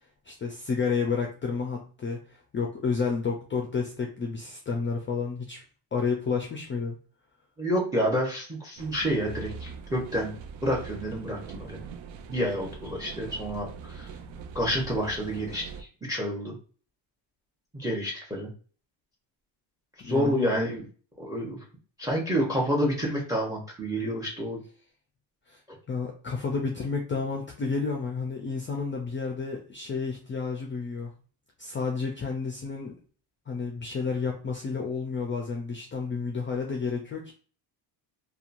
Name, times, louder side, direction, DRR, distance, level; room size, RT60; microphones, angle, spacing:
voice 1, 0.3-5.6 5.9-7.0 20.0-20.5 25.5-25.6 25.9-31.1 31.6-33.0 33.5-37.3, left 5 dB, 25° left, 1 dB, 0.4 m, -31 dB
voice 2, 7.6-10.3 10.6-11.8 12.3-14.1 14.5-16.6 17.7-18.5 20.0-20.9 21.2-21.6 22.0-24.6, equal, 5° right, -2 dB, 0.8 m, -29 dB
sound 1, 8.8-15.8, right 6 dB, 65° right, 0.6 m, -42 dB
2.7 x 2.3 x 2.5 m, 0.40 s
cardioid pair, 105°, 49 cm